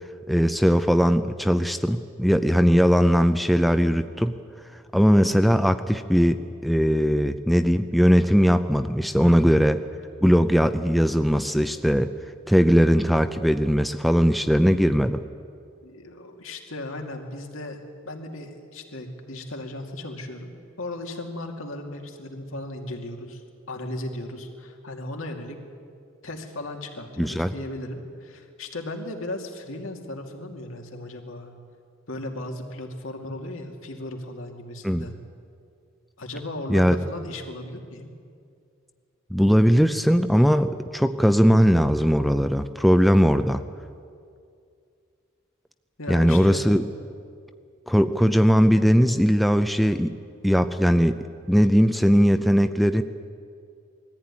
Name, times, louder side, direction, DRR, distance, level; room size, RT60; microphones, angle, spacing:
voice 1, 0.3-4.4 4.9-9.8 10.2-12.1 12.5-15.2 27.2-27.5 34.8-35.1 36.7-37.0 39.3-43.6 46.1-46.8 47.9-50.2 50.4-51.2 51.5-53.0, equal, ahead, 8 dB, 0.5 m, -19 dB
voice 2, 9.2-9.6 15.8-17.8 18.1-25.6 26.2-31.5 32.1-35.1 36.2-38.1 46.0-46.7, left 1 dB, 85° left, 2 dB, 2.5 m, -36 dB
21.0 x 14.5 x 9.7 m, 2.3 s
head